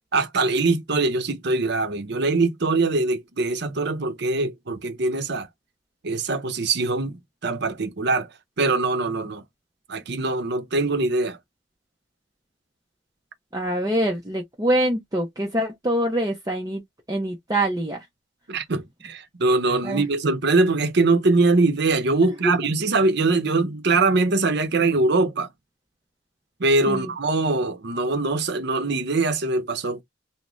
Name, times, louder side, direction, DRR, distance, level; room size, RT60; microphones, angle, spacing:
voice 1, 0.1-5.5 6.0-8.3 8.6-9.4 9.9-11.4 18.5-25.5 26.6-30.0, right 3 dB, 60° right, 0.8 m, -22 dB
voice 2, 13.5-16.8 17.1-18.0 19.8-20.0 22.2-22.5 26.9-27.1, right 1 dB, 20° right, 0.7 m, -25 dB
3.8 x 2.1 x 3.0 m
head